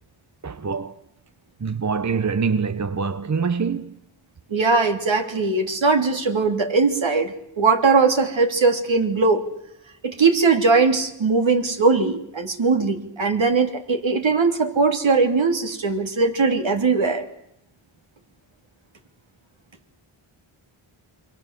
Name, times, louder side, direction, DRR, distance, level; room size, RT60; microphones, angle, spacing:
voice 1, 0.4-0.9 1.6-3.9, right 5 dB, 35° right, 0.9 m, -24 dB
voice 2, 4.5-9.4 10.0-17.2, right 4 dB, 65° right, 3.2 m, -20 dB
28.0 x 23.0 x 7.5 m
cardioid pair, 65°, 50 cm